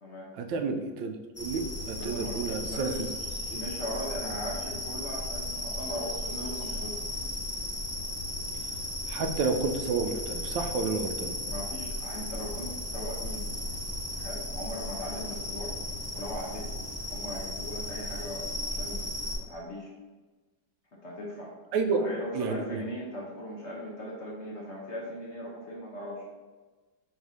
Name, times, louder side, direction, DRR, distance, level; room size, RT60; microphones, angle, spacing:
voice 1, 0.4-2.9 3.5-3.6 9.1-11.3 21.7-22.0 22.3-22.8, right 4 dB, 85° right, 6 dB, 1.3 m, -30 dB
sound 1, 1.3-19.4, left 1 dB, 25° left, 0.3 m, -35 dB
voice 2, 1.9-3.2 3.5-7.1 11.4-13.5 14.1-15.7 16.1-16.7 17.1-19.0 19.5-19.9 21.0-21.5 21.9-26.2, equal, 50° left, -4 dB, 0.9 m, -39 dB
4.1 x 2.7 x 4.7 m, 1.3 s
omnidirectional pair, 2.0 m